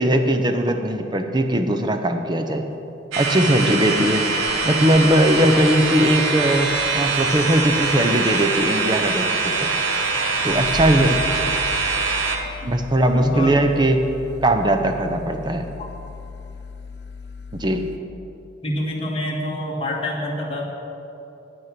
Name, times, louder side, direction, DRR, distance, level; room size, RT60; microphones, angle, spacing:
voice 1, 0.0-2.6 3.2-4.3 4.6-9.8 10.4-11.2 12.6-14.0 14.4-15.7 17.6-17.9, right 1 dB, 20° right, 6 dB, 0.7 m, -19 dB
sound 1, 3.1-12.4, right 4 dB, 80° right, 1.2 m, -23 dB
sound 2, 3.2-3.3 3.8-4.0 4.3-7.0 7.5-7.9 8.8-8.9 9.8-9.9 10.3-18.0, left 3 dB, 55° left, 0.6 m, -37 dB
voice 2, 13.1-13.5 15.8-15.9 18.6-20.7, left 1 dB, 30° left, -3 dB, 1.6 m, -26 dB
9.5 x 9.4 x 5.9 m, 2.8 s
head